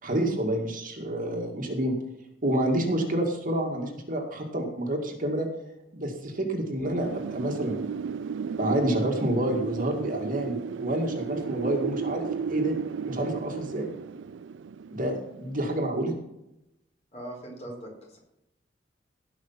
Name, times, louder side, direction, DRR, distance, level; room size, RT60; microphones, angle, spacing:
voice 1, 0.0-1.9 2.4-5.5 5.9-7.8 8.6-12.7 13.1-13.9 14.9-16.1, right 1 dB, 45° right, 2 dB, 2.1 m, -28 dB
Wind, 7.0-15.7, right 6 dB, 75° right, 0.4 m, -34 dB
voice 2, 17.1-18.2, right 1 dB, 35° left, -1 dB, 4.4 m, -41 dB
17.0 x 5.8 x 5.8 m, 0.87 s
head